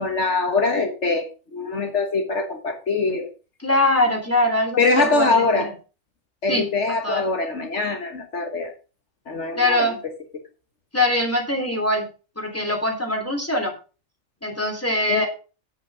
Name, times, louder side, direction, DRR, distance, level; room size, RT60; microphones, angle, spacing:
voice 1, 0.0-3.3 4.8-5.7 6.4-8.7 9.3-9.9 10.3-10.4 15.1-15.3, left 3 dB, 60° left, 6 dB, 1.6 m, -23 dB
voice 2, 3.6-5.4 6.5-6.6 7.0-7.2 9.6-10.0 10.9-12.0 12.4-13.7 14.4-15.3, left 1 dB, 10° left, 2 dB, 3.2 m, -22 dB
9.5 x 8.2 x 4.8 m, 0.34 s
omnidirectional pair, 1.4 m